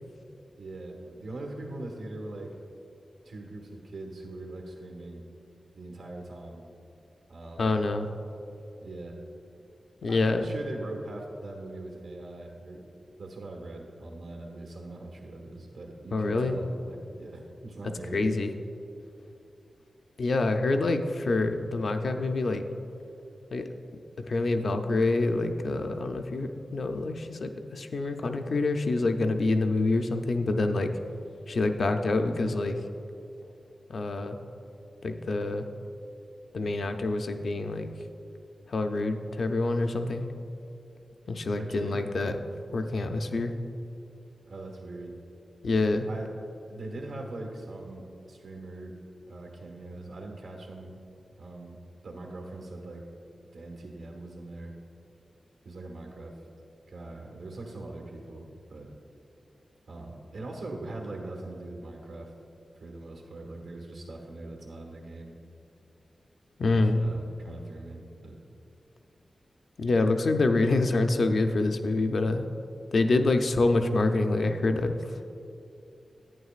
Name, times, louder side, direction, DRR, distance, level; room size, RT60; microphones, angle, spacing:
voice 1, 0.6-2.6 3.2-5.2 5.7-6.7 7.3-7.8 8.8-9.2 10.1-12.8 13.2-18.4 41.6-42.1 44.5-45.2 46.1-46.3 46.7-49.0 49.3-51.0 51.4-51.8 52.0-53.1 53.5-54.7 55.6-56.4 56.9-58.9 59.9-62.3 62.8-65.4 66.6-68.4, right 2 dB, 90° right, 1 dB, 1.3 m, -41 dB
voice 2, 7.6-8.1 10.0-10.4 16.1-16.6 18.1-18.5 20.2-22.6 23.5-23.7 24.3-30.9 31.5-32.8 33.9-34.4 35.0-35.7 36.5-37.9 38.7-40.3 41.3-42.3 42.7-43.5 45.6-46.1 66.6-67.0 69.8-72.5 72.9-75.3, left 2 dB, 60° left, 6 dB, 0.5 m, -26 dB
11.0 x 9.1 x 2.4 m, 2.7 s
wide cardioid pair, 170°, 0 cm